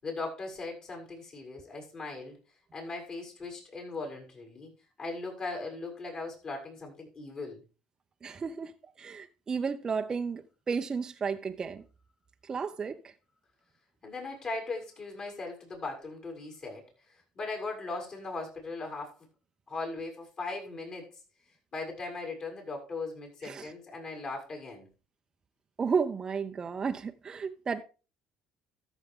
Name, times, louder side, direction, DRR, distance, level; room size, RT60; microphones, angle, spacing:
voice 1, 0.0-2.4 2.7-4.7 5.0-7.6 14.0-19.3 19.7-21.1 21.7-24.9, left 3 dB, 40° left, 7.0 m, -39 dB
voice 2, 8.2-11.8 12.4-13.1 23.4-23.7 25.8-27.8, right 5 dB, 30° right, 0.7 m, -33 dB
13.5 x 7.1 x 3.8 m
supercardioid pair, 85°, 2 cm